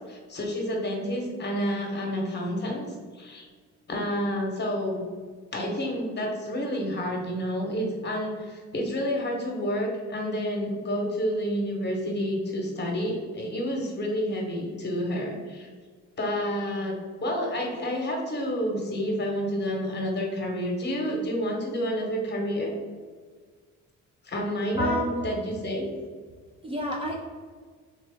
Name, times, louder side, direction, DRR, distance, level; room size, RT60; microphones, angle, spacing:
voice 1, 0.1-3.5 3.9-5.0 5.5-15.7 16.2-22.7 24.2-25.9, equal, 35° left, 0 dB, 1.0 m, -29 dB
voice 2, 24.8-25.2 26.6-27.2, equal, 20° right, -1 dB, 0.5 m, -28 dB
3.6 x 2.8 x 3.4 m, 1.6 s
cardioid pair, 90°, 30 cm